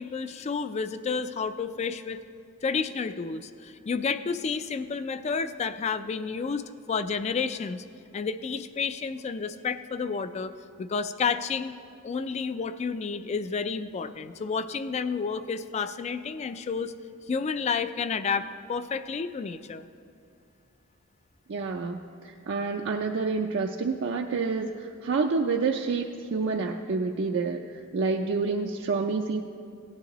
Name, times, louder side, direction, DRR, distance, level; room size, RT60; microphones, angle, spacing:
voice 1, 0.0-2.2 2.6-7.8 8.1-10.5 10.8-11.8 12.0-16.9 17.3-19.9, left 5 dB, 30° left, 12 dB, 0.3 m, -30 dB
voice 2, 21.5-29.4, right 4 dB, 60° right, 2 dB, 0.4 m, -28 dB
16.5 x 9.6 x 3.0 m, 2.5 s
head